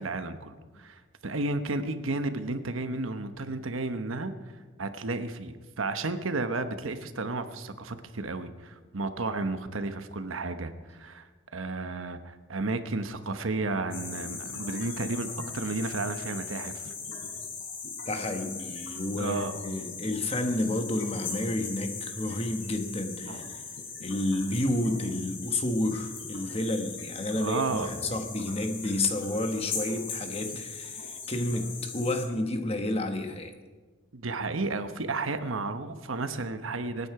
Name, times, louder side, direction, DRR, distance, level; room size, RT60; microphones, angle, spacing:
voice 1, 0.0-4.3 4.8-15.3 15.5-16.9 19.2-19.5 23.3-23.4 27.4-27.9 34.1-37.1, right 3 dB, 85° right, 9 dB, 1.1 m, -32 dB
sound 1, 13.9-32.2, left 5 dB, 70° left, 4.4 m, -39 dB
voice 2, 18.0-23.6 24.0-33.5, left 1 dB, 30° left, 6 dB, 1.3 m, -30 dB
25.0 x 9.7 x 4.9 m, 1.4 s
head